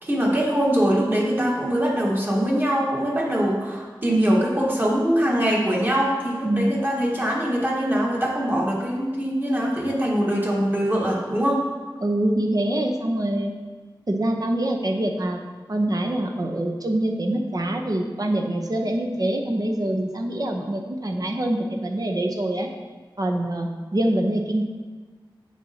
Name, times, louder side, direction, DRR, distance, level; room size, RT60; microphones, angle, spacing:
voice 1, 0.0-11.7, equal, 25° right, -3 dB, 1.5 m, -22 dB
voice 2, 6.4-6.8 12.0-13.5 14.1-15.4 15.7-22.7 23.2-24.7, right 1 dB, 45° right, 2 dB, 0.8 m, -25 dB
8.4 x 6.4 x 2.8 m, 1.4 s
wide cardioid pair, 60°, 9 cm